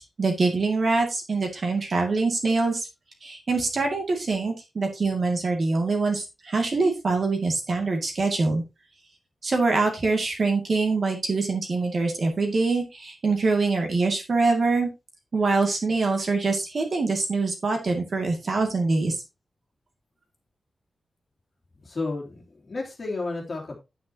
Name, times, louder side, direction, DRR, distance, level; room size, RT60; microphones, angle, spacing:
voice 1, 0.0-2.9 3.2-8.6 9.4-14.9 15.3-19.1, right 3 dB, 45° right, 3 dB, 2.4 m, -24 dB
voice 2, 21.8-23.8, left 3 dB, 40° left, -1 dB, 3.0 m, -32 dB
9.4 x 9.0 x 2.9 m, 0.25 s
wide cardioid pair, 175°, 0 cm